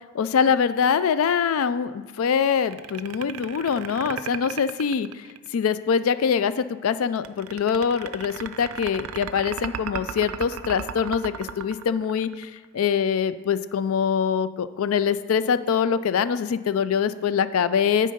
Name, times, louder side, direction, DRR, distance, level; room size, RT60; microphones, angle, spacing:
voice 1, 0.1-5.1 5.5-18.1, left 7 dB, 75° left, 14 dB, 0.4 m, -24 dB
sound 1, 2.6-5.7 7.2-12.7, right 8 dB, 85° right, 0.4 m, -35 dB
9.2 x 3.8 x 5.1 m, 1.3 s
head